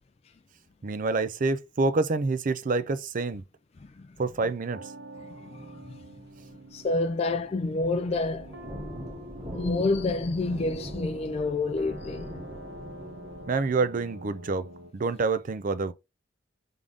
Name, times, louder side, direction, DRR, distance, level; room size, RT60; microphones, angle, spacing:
voice 1, 0.8-3.4 4.2-4.8 13.5-14.7 14.9-15.9, right 3 dB, 45° right, 0.5 m, -27 dB
voice 2, 3.8-4.2 5.2-6.0 6.7-8.6 9.5-12.4, left 3 dB, 35° left, 0.4 m, -29 dB
sound 1, 4.7-14.9, right 1 dB, 65° right, 0.9 m, -47 dB
sound 2, 6.8-6.9 7.2-13.4, equal, 30° right, 1.9 m, -41 dB
3.7 x 3.6 x 3.7 m
head